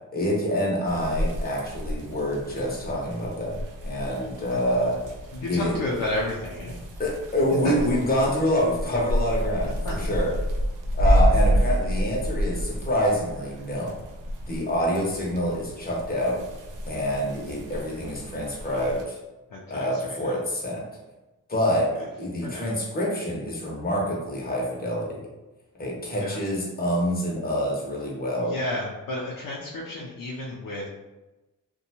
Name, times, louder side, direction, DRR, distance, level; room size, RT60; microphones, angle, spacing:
voice 1, 0.1-3.6 3.8-5.0 5.5-5.7 7.0-10.3 10.9-13.9 14.4-16.4 16.9-19.2 19.7-20.8 21.5-25.3 25.8-28.6, equal, 25° left, -3 dB, 0.8 m, -26 dB
sound 1, 0.9-19.0, equal, 65° right, 0.6 m, -29 dB
voice 2, 5.3-6.8 7.6-7.7 9.8-10.1 11.4-11.5 18.7-18.8 19.5-20.4 22.4-22.7 26.1-26.4 28.4-30.9, left 2 dB, 80° left, -4 dB, 0.5 m, -32 dB
2.6 x 2.2 x 2.8 m, 1.1 s
cardioid pair, 80°, 33 cm